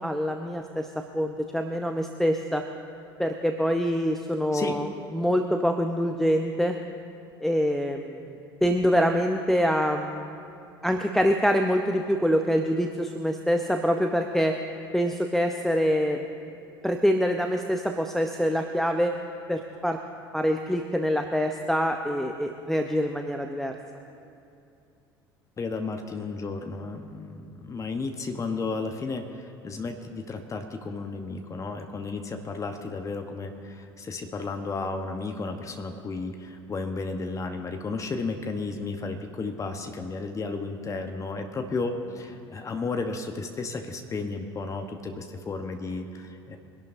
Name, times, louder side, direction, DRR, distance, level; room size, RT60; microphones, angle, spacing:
voice 1, 0.0-2.6 3.2-4.9 5.1-6.8 7.4-10.3 10.8-14.5 14.9-16.3 16.8-19.2 19.5-20.0 20.3-23.8, equal, 5° left, 4 dB, 0.8 m, -25 dB
voice 2, 25.6-46.6, left 3 dB, 25° left, 5 dB, 1.1 m, -33 dB
24.0 x 11.5 x 2.7 m, 2.7 s
figure-of-eight pair, 60°, 13 cm